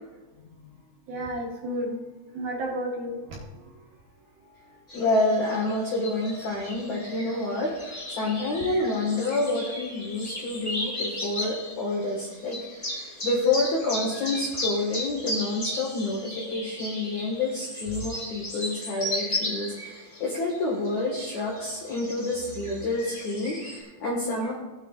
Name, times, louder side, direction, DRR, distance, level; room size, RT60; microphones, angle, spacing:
voice 1, 1.1-2.0 2.3-3.8 4.3-4.8 17.9-18.1, equal, 65° right, -3 dB, 2.5 m, -33 dB
voice 2, 4.9-24.5, left 2 dB, 60° left, -4 dB, 2.1 m, -28 dB
sound 1, 4.9-23.8, left 1 dB, 30° left, 0.9 m, -36 dB
18.5 x 9.4 x 2.5 m, 1.2 s
omnidirectional pair, 5.7 m